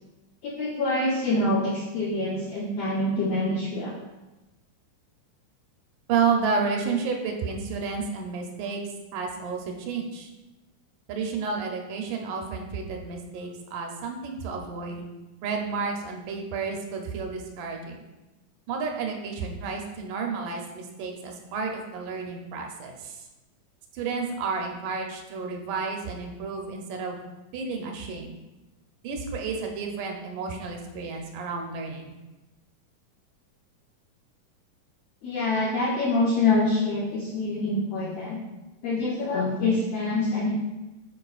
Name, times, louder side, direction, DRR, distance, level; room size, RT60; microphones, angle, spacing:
voice 1, 0.4-4.0 35.2-38.4 38.8-40.5, left 2 dB, 75° left, -5 dB, 1.4 m, -25 dB
voice 2, 6.1-8.8 9.1-10.3 11.1-15.0 15.4-18.0 18.7-23.2 23.9-27.2 27.5-28.4 29.0-32.2, right 5 dB, 80° right, 2 dB, 2.2 m, -31 dB
9.1 x 4.6 x 2.4 m, 1.1 s
omnidirectional pair, 3.8 m